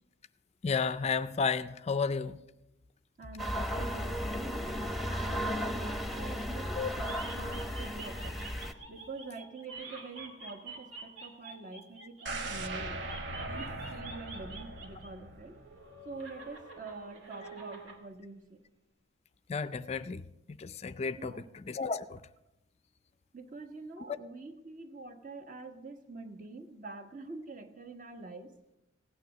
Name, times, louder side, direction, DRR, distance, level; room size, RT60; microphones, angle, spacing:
voice 1, 0.6-2.4 6.7-6.9 13.1-13.2 19.5-22.2 24.0-24.1, left 5 dB, 35° left, 14 dB, 0.4 m, -33 dB
voice 2, 3.2-5.5 5.7-8.4 8.9-13.1 13.5-15.6 16.0-18.6 21.2-21.4 23.3-28.5, right 3 dB, 45° right, 6 dB, 1.4 m, -46 dB
sound 1, 3.4-8.7, equal, ahead, 0.9 m, -35 dB
sound 2, 4.3-6.7 7.0-12.5 13.0-15.1 15.4-18.0, right 3 dB, 85° right, 2.5 m, -48 dB
sound 3, 12.3-16.2 16.6-16.7, right 2 dB, 65° right, 1.2 m, -40 dB
16.5 x 9.5 x 6.3 m, 0.92 s
head